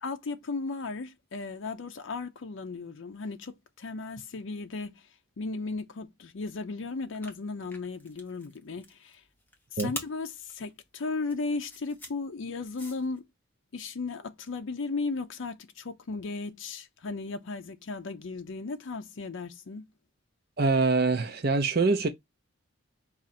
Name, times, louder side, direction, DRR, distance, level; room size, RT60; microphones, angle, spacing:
voice 1, 0.0-5.0 5.4-9.2 9.7-13.3 13.7-19.9, left 3 dB, 65° left, 0.5 m, -36 dB
sound 1, 7.0-13.2, left 1 dB, 10° left, 0.8 m, -44 dB
voice 2, 20.6-22.1, right 3 dB, 45° right, 0.6 m, -24 dB
4.9 x 2.5 x 4.1 m
head